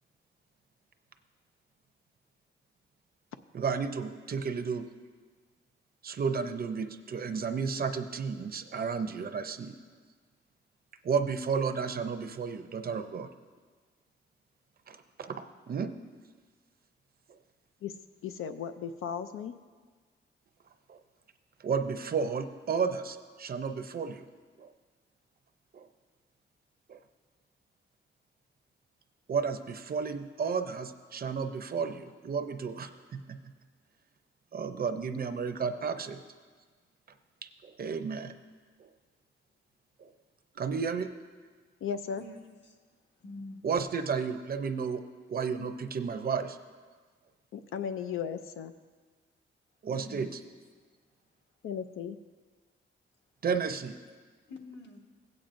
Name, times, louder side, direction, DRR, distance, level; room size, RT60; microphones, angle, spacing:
voice 1, 3.5-4.9 6.0-9.7 11.0-13.3 14.9-15.9 20.9-21.0 21.6-24.2 24.6-24.7 25.7-25.9 26.9-27.0 29.3-33.4 34.5-36.2 37.6-38.3 38.8-38.9 40.0-40.1 40.6-41.1 43.6-45.0 45.3-46.6 49.8-50.3 53.4-54.0, right 5 dB, 45° right, 8 dB, 0.5 m, -32 dB
voice 2, 18.2-19.5 41.8-42.2 47.5-48.7 51.6-52.2, left 7 dB, 90° left, 9 dB, 0.5 m, -36 dB
voice 3, 42.2-42.8 43.2-43.6 49.9-50.4 54.5-55.0, left 2 dB, 55° left, 1 dB, 1.4 m, -46 dB
17.0 x 8.7 x 2.6 m, 1.5 s
wide cardioid pair, 145°, 21 cm